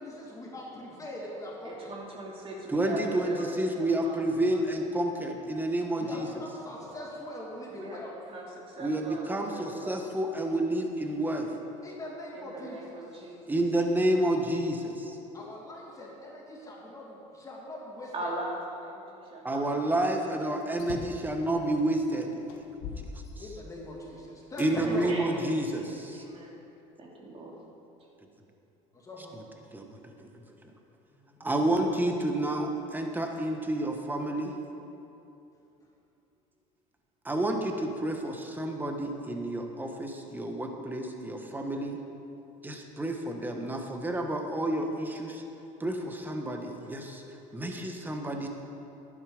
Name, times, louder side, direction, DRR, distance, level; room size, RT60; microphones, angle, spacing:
voice 1, 0.0-1.9 6.0-8.1 11.8-12.8 15.3-18.3 23.4-25.2 28.9-29.4 31.1-31.5 35.0-35.2, left 1 dB, 20° left, -4 dB, 2.8 m, -41 dB
voice 2, 1.6-4.4 7.7-8.0 8.3-8.5 8.8-10.0 12.3-13.6 18.1-20.3 24.6-26.6 27.0-27.6, right 1 dB, 35° right, -2 dB, 2.8 m, -40 dB
voice 3, 2.7-6.3 8.8-11.5 13.5-15.2 19.4-22.3 23.0-23.1 24.6-26.2 29.7-30.3 31.4-34.5 37.2-42.0 42.6-45.4 45.8-47.2 47.5-48.5, right 1 dB, 10° right, 3 dB, 1.4 m, -30 dB
sound 1, 20.8-21.3 21.9-22.0 22.5-23.9 24.6-24.7 25.4-26.5, left 5 dB, 75° left, 1.4 m, -42 dB
11.5 x 10.5 x 5.2 m, 2.8 s
supercardioid pair, 110°, 16 cm